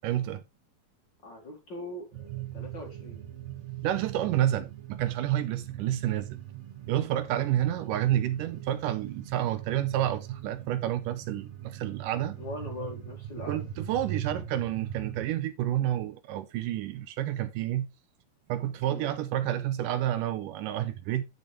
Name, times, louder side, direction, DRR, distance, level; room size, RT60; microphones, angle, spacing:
voice 1, 0.0-0.4 3.8-6.4 6.9-12.4 13.5-17.9 18.5-21.2, right 12 dB, 80° right, 2.0 m, -29 dB
voice 2, 1.2-3.2 7.3-7.5 12.4-13.6 18.9-19.1, left 2 dB, 35° left, 2.3 m, -41 dB
sound 1, 2.1-15.3, right 12 dB, 50° right, 3.0 m, -41 dB
10.5 x 6.5 x 3.2 m
omnidirectional pair, 4.2 m